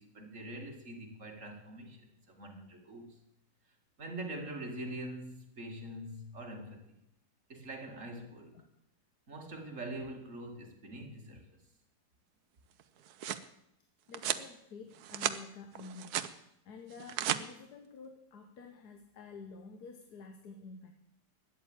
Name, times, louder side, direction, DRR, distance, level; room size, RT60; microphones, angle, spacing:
voice 1, 0.0-3.2 4.0-7.0 7.5-8.6 9.3-11.4, right 1 dB, 45° right, 3 dB, 2.5 m, -44 dB
sound 1, 12.8-13.5 14.1-14.5 14.9-15.4 15.8-16.3 16.9-17.4, right 11 dB, 65° right, 1.2 m, -35 dB
voice 2, 14.1-16.2 16.6-20.9, left 4 dB, 65° left, 7 dB, 1.6 m, -50 dB
13.0 x 10.0 x 8.8 m, 0.79 s
omnidirectional pair, 1.9 m